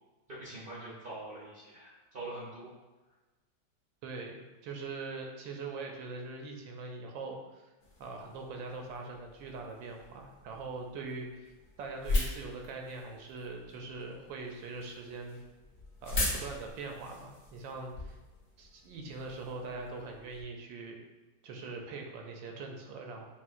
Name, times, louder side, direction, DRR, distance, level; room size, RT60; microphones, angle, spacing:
voice 1, 0.3-2.7, right 2 dB, 55° right, -7 dB, 0.6 m, -44 dB
voice 2, 4.0-7.7 8.0-11.5 11.8-15.4 16.0-18.2 18.6-21.0 21.4-23.2, right 3 dB, 80° right, 2 dB, 1.3 m, -42 dB
sound 1, 7.8-20.4, left 2 dB, 45° left, 1.1 m, -40 dB
7.0 x 2.4 x 2.5 m, 1.2 s
omnidirectional pair, 2.1 m